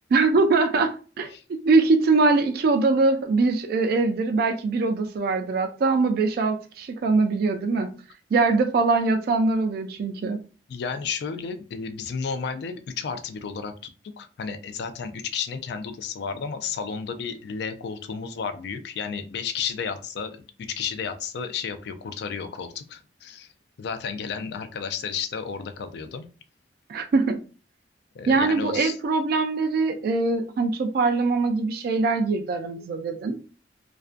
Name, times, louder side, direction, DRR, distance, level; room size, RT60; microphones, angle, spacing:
voice 1, 0.1-1.3 1.6-7.9 8.3-10.4 26.9-27.4 28.3-33.4, right 3 dB, 55° right, 0.3 m, -22 dB
voice 2, 10.7-23.5 23.8-26.3 28.1-29.0, left 6 dB, 60° left, 0.3 m, -32 dB
2.4 x 2.2 x 2.4 m
head